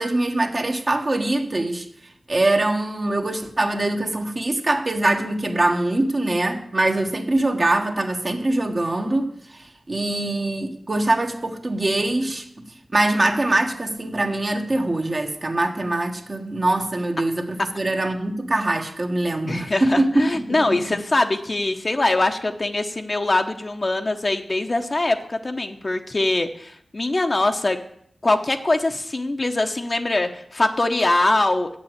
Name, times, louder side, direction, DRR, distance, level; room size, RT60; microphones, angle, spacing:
voice 1, 0.0-1.8 2.3-12.4 12.9-20.8, right 2 dB, 50° right, 3 dB, 1.5 m, -23 dB
voice 2, 19.4-27.8 28.2-31.7, left 2 dB, 45° left, 5 dB, 0.9 m, -22 dB
7.9 x 7.1 x 8.0 m, 0.69 s
cardioid pair, 45°, 0 cm